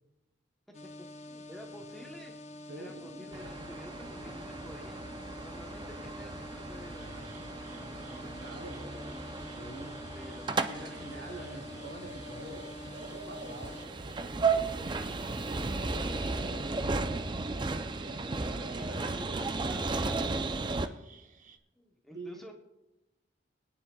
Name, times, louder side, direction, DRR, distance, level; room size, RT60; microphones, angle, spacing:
sound 1, 0.7-13.9, left 2 dB, 35° left, 0.9 m, -47 dB
voice 1, 1.3-2.3 2.8-9.4 10.1-11.9 18.3-20.4 21.8-22.5, equal, ahead, 1 dB, 0.9 m, -50 dB
voice 2, 2.7-3.7 8.4-8.9 9.6-10.0 10.6-17.4 17.9-18.4 22.1-22.4, right 1 dB, 70° right, -2 dB, 3.9 m, -47 dB
sound 2, 3.3-20.9, right 3 dB, 25° right, 0.5 m, -35 dB
sound 3, 7.0-21.6, right 3 dB, 45° right, 0.8 m, -52 dB
22.0 x 9.9 x 2.3 m, 0.98 s
head